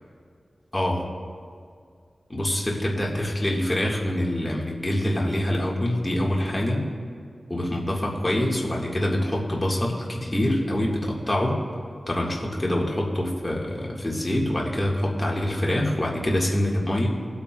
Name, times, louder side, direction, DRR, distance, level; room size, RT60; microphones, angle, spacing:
voice 1, 0.7-1.0 2.3-6.9 7.5-11.6 12.1-17.1, left 1 dB, 25° left, -3 dB, 2.0 m, -25 dB
20.5 x 8.5 x 2.5 m, 2.2 s
cardioid pair, 55°, 0 cm